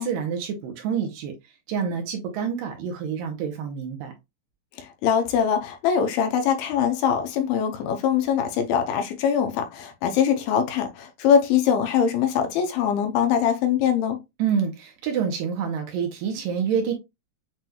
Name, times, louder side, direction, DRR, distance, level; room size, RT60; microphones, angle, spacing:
voice 1, 0.0-1.3 1.7-4.1 14.4-16.9, right 7 dB, 75° right, 2.2 m, -27 dB
voice 2, 4.8-14.2, left 8 dB, 80° left, 2.5 m, -22 dB
7.7 x 3.0 x 2.3 m
omnidirectional pair, 4.5 m